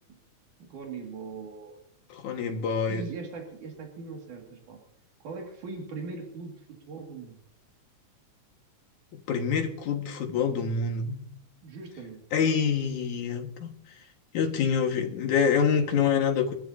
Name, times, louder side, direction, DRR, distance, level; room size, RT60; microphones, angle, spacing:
voice 1, 0.6-1.8 2.9-4.8 5.2-7.4 11.6-12.2, right 4 dB, 80° right, 3.8 m, -40 dB
voice 2, 2.1-3.0 9.3-11.3 12.3-13.7 14.3-16.5, left 6 dB, 80° left, 3.1 m, -26 dB
24.0 x 13.5 x 2.8 m
omnidirectional pair, 3.5 m